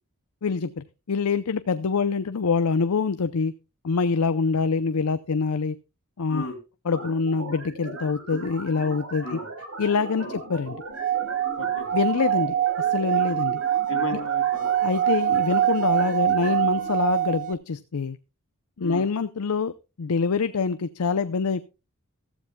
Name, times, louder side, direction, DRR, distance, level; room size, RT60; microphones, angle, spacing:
voice 1, 0.4-3.5 3.8-5.8 6.2-6.4 6.9-9.4 9.8-10.8 11.9-13.6 14.8-18.2 18.8-21.6, left 5 dB, 80° left, 12 dB, 0.6 m, -25 dB
sound 1, 6.9-16.9, right 2 dB, 70° right, 5.5 m, -38 dB
Singing / Glass, 10.9-17.5, right 12 dB, 35° right, 0.6 m, -24 dB
voice 2, 11.6-11.9 13.9-14.7 18.8-19.1, left 2 dB, 65° left, 3 dB, 3.3 m, -34 dB
14.5 x 14.5 x 2.2 m, 0.29 s
head